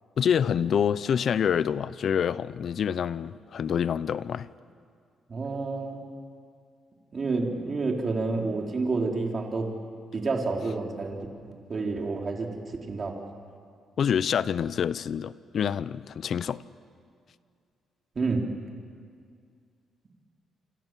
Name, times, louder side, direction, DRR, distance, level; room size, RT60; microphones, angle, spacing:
voice 1, 0.2-4.5 14.0-16.6, left 8 dB, 60° left, 17 dB, 0.7 m, -26 dB
voice 2, 5.3-6.0 7.1-9.7 10.1-13.2 18.2-18.5, right 3 dB, 40° right, 1 dB, 3.7 m, -29 dB
27.5 x 26.5 x 7.6 m, 2.2 s
cardioid pair, 90°, 0 cm